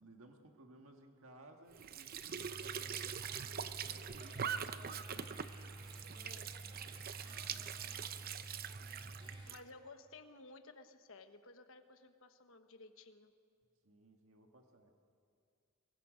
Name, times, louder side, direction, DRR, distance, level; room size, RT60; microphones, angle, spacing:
voice 1, 0.0-5.0 5.6-6.8 7.1-9.2 13.8-14.9, right 2 dB, 70° right, 3 dB, 1.7 m, -62 dB
Squeak / Sink (filling or washing) / Trickle dribble, 1.7-9.6, right 7 dB, 45° right, 0.6 m, -43 dB
sound 1, 2.4-9.5, right 1 dB, 20° right, 3.4 m, -51 dB
voice 2, 9.5-13.3, left 3 dB, 65° left, 8 dB, 1.2 m, -56 dB
24.0 x 22.0 x 5.2 m, 2.2 s
head